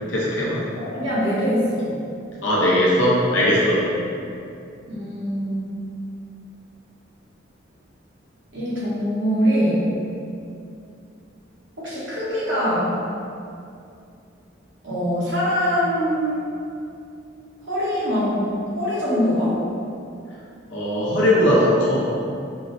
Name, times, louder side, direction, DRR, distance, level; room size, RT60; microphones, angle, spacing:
voice 1, 0.1-0.6 2.4-3.8 20.7-22.0, left 1 dB, 75° left, -7 dB, 0.7 m, -19 dB
voice 2, 0.8-2.0 4.9-5.7 8.5-9.9 11.8-13.0 14.8-16.5 17.7-18.4 18.8-19.6, equal, 70° right, -9 dB, 1.2 m, -23 dB
4.5 x 2.1 x 2.6 m, 2.6 s
head